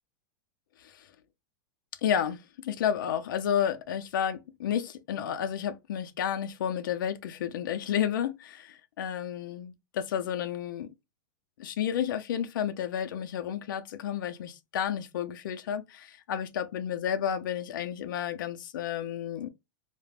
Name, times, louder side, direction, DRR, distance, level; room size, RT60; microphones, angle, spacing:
voice 1, 2.0-10.9 11.6-19.5, left 9 dB, 90° left, 0.5 m, -31 dB
2.4 x 2.1 x 3.2 m
supercardioid pair, 175°, 10 cm